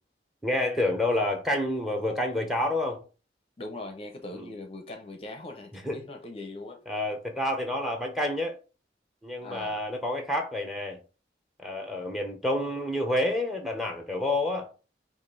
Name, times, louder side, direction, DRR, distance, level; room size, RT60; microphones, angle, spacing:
voice 1, 0.4-3.0 4.3-4.5 5.7-6.0 6.9-8.6 9.2-11.0 11.6-14.7, left 1 dB, ahead, 0.8 m, -29 dB
voice 2, 3.6-6.8 9.4-9.8, left 2 dB, 30° left, 0.6 m, -40 dB
5.1 x 2.5 x 3.8 m
head